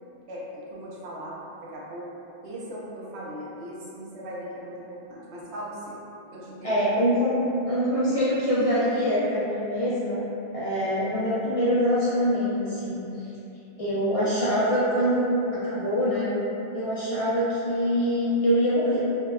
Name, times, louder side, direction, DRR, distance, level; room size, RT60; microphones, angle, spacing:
voice 1, 0.3-1.3 1.6-2.1 2.4-6.0 6.3-6.9, equal, 75° right, -6 dB, 0.8 m, -38 dB
voice 2, 6.6-7.4 7.7-10.2 10.5-13.0 13.8-16.3 16.7-19.0, equal, 65° left, -11 dB, 0.3 m, -24 dB
2.7 x 2.2 x 2.2 m, 2.9 s
omnidirectional pair, 1.1 m